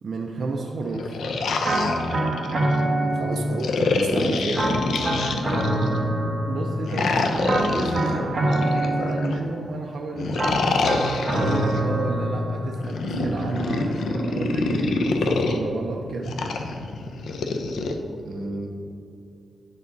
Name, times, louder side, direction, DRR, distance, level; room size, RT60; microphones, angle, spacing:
voice 1, 0.0-1.2 6.5-10.7 11.3-16.4, right 3 dB, 50° right, 0 dB, 0.6 m, -31 dB
sound 1, 0.9-2.8 3.6-6.0 6.8-9.4 10.2-11.8 12.8-15.6 16.3-17.9, left 3 dB, 75° left, 0.7 m, -26 dB
sound 2, 1.6-3.7 4.5-6.9 7.4-9.5 10.4-12.7, right 1 dB, 30° right, 1.4 m, -25 dB
voice 2, 3.0-4.9 18.2-18.7, right 2 dB, 70° right, 3 dB, 1.2 m, -30 dB
9.3 x 6.7 x 4.0 m, 2.5 s
wide cardioid pair, 135°, 0 cm